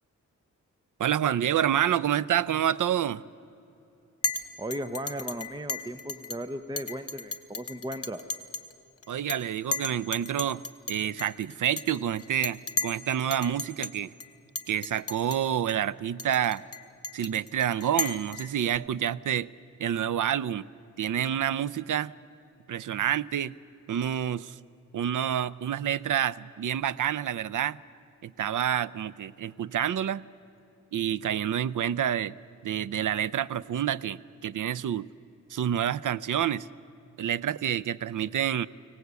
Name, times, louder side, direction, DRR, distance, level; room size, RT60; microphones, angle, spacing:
voice 1, 1.0-3.2 9.1-14.1 14.7-16.6 17.1-19.5 19.8-20.7 21.0-22.1 22.7-23.5 23.9-24.6 24.9-27.8 28.2-30.2 30.9-32.4 32.6-35.1 35.5-36.7 37.2-38.7, right 10 dB, 70° right, 19 dB, 0.6 m, -28 dB
Chink clink, 4.2-4.4 4.7-6.4 6.8-8.7 9.0-9.4 9.7-13.0 13.3-13.9 14.2-14.3 14.6-15.4 15.7-15.8 16.2-18.8, left 3 dB, 45° left, 1.1 m, -34 dB
voice 2, 4.6-8.2, right 1 dB, 15° right, 10 dB, 0.8 m, -36 dB
24.5 x 18.0 x 8.2 m, 2.8 s
wide cardioid pair, 95°, 32 cm